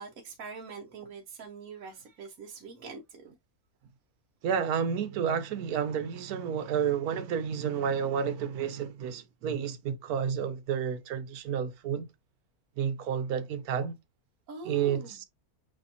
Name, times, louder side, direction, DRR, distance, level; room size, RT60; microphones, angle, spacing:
voice 1, 0.0-3.3 14.5-15.2, right 4 dB, 70° right, 1.2 m, -43 dB
voice 2, 4.4-12.1 12.8-14.0 14.6-15.2, right 7 dB, 90° right, 1.2 m, -30 dB
6.4 x 2.9 x 2.8 m
omnidirectional pair, 1.5 m